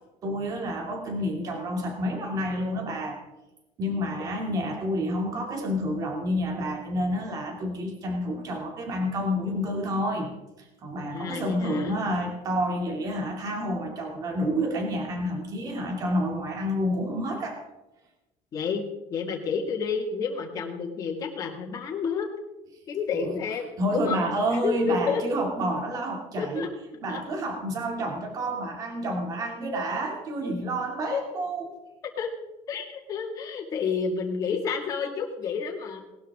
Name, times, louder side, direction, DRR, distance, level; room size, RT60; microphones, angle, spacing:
voice 1, 0.2-3.2 3.8-10.3 10.6-17.6 23.1-23.4 23.8-26.7 27.0-31.7, equal, 35° right, 2 dB, 2.6 m, -29 dB
voice 2, 11.1-12.0 18.5-18.8 19.1-22.3 22.9-24.2 24.6-25.2 26.4-26.7 27.1-27.2 31.1-31.2 32.2-32.3 32.7-36.0, left 6 dB, 30° left, 0 dB, 2.1 m, -30 dB
19.5 x 12.0 x 3.6 m, 0.99 s
cardioid pair, 170°, 11 cm